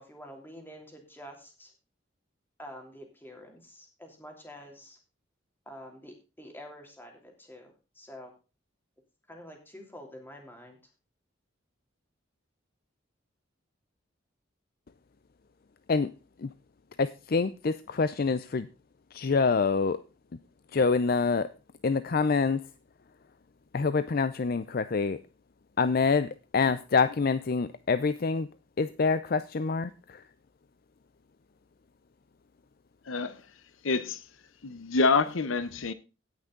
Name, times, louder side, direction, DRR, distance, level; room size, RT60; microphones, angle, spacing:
voice 1, 0.0-1.7 2.6-5.0 5.7-8.3 9.3-10.8, equal, 10° left, 3.0 m, -47 dB
voice 2, 17.0-18.7 19.1-20.0 20.7-21.5 21.8-22.7 23.7-25.2 25.8-28.5 28.8-30.3, left 4 dB, 50° left, 0.5 m, -26 dB
voice 3, 33.1-33.4 33.8-34.2 34.6-35.9, left 4 dB, 85° left, 0.8 m, -26 dB
17.0 x 6.2 x 3.8 m
head